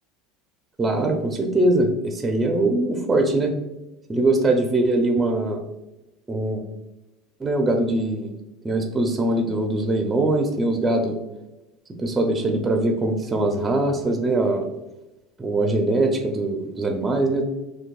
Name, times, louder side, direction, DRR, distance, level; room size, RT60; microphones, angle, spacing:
voice 1, 0.8-3.6 4.1-5.6 6.3-6.6 7.4-8.3 8.6-11.2 12.0-14.6 15.4-17.4, right 2 dB, 15° right, 3 dB, 0.4 m, -22 dB
6.6 x 2.3 x 2.2 m, 0.96 s
cardioid pair, 155°, 0 cm